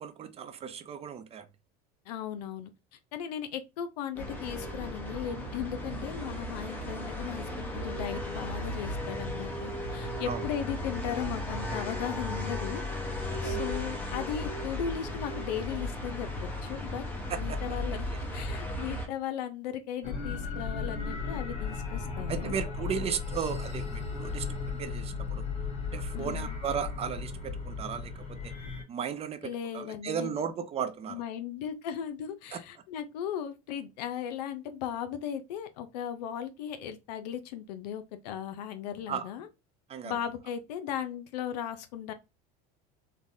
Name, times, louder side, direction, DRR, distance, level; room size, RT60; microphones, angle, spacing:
voice 1, 0.0-1.4 10.3-10.4 13.3-13.6 17.3-17.6 22.3-24.5 24.8-25.5 25.9-28.5 28.9-31.2 32.5-32.6 39.1-39.3 39.9-40.1, right 7 dB, 30° right, 0.5 m, -35 dB
voice 2, 2.1-2.7 3.1-12.8 13.4-17.0 17.3-18.1 18.3-22.6 26.1-26.6 29.4-30.4 31.1-39.5 40.0-42.1, left 9 dB, 90° left, 0.5 m, -37 dB
sound 1, 4.1-19.1, left 1 dB, 10° left, 0.8 m, -35 dB
sound 2, 20.0-28.8, left 5 dB, 30° left, 1.5 m, -35 dB
3.2 x 2.2 x 2.6 m
supercardioid pair, 105°, 20 cm